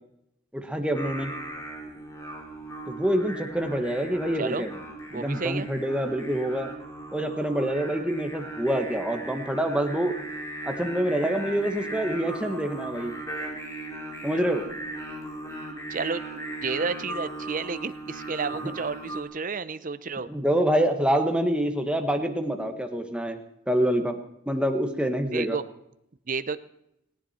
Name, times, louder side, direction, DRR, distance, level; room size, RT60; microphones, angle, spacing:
voice 1, 0.5-1.3 2.9-4.7 5.1-6.7 7.1-10.1 10.6-13.1 14.2-14.6 18.6-18.7 20.3-23.4 23.7-24.1 24.5-25.6, right 1 dB, 5° right, 5 dB, 1.4 m, -26 dB
Singing, 0.9-19.2, right 2 dB, 15° left, 3.2 m, -38 dB
voice 2, 5.1-5.7 15.9-16.2 16.6-20.3 25.3-25.6 26.3-26.6, right 4 dB, 40° right, 13 dB, 0.7 m, -31 dB
18.5 x 18.0 x 4.4 m, 0.79 s
head